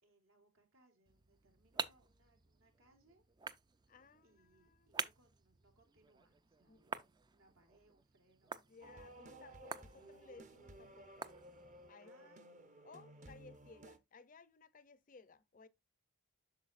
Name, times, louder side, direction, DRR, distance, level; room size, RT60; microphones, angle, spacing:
voice 1, 0.0-3.2 4.2-8.9 9.5-10.1 12.0-12.7, right 2 dB, 80° right, 2.6 m, -72 dB
sound 1, 1.1-11.9, right 4 dB, 20° right, 0.3 m, -49 dB
voice 2, 3.9-4.9 6.7-6.8 8.7-11.2 11.9-12.1 12.8-15.7, left 4 dB, 40° left, 0.5 m, -60 dB
sound 2, 8.8-14.0, right 1 dB, 35° right, 0.8 m, -56 dB
8.2 x 6.2 x 2.4 m
head